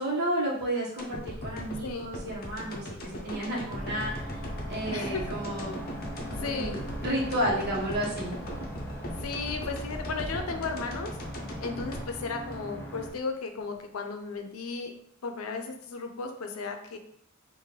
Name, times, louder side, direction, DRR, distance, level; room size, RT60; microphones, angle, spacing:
voice 1, 0.0-4.4 4.7-5.7 6.2-8.3, right 1 dB, 50° right, -5 dB, 1.2 m, -32 dB
sound 1, 1.0-13.2 13.6-13.7, left 1 dB, 45° left, 0.7 m, -39 dB
voice 2, 1.8-2.1 4.9-5.2 6.4-6.8 9.2-11.1 11.6-14.9 15.2-17.0, left 4 dB, 85° left, 5 dB, 0.5 m, -35 dB
sound 2, 3.7-13.1, right 1 dB, 10° left, 0.7 m, -40 dB
3.7 x 2.6 x 3.2 m, 0.68 s
head